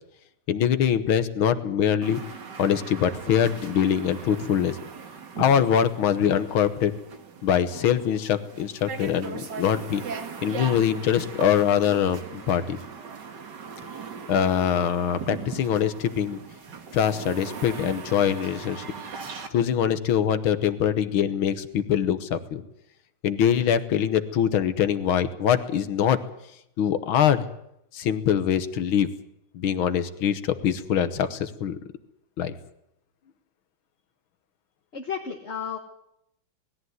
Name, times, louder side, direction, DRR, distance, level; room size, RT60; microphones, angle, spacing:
voice 1, 0.5-2.2 2.6-4.8 5.4-6.9 7.4-10.0 10.4-12.8 14.3-16.4 16.9-18.8 19.5-22.6 23.2-26.2 26.8-27.4 27.9-29.1 29.5-31.8 32.4-32.5, left 9 dB, 75° left, 11 dB, 1.9 m, -23 dB
sound 1, 2.0-19.5, right 6 dB, 55° right, 2.1 m, -39 dB
voice 2, 34.9-35.8, left 7 dB, 35° left, 1 dB, 1.5 m, -32 dB
19.5 x 14.0 x 9.4 m, 0.80 s
omnidirectional pair, 2.3 m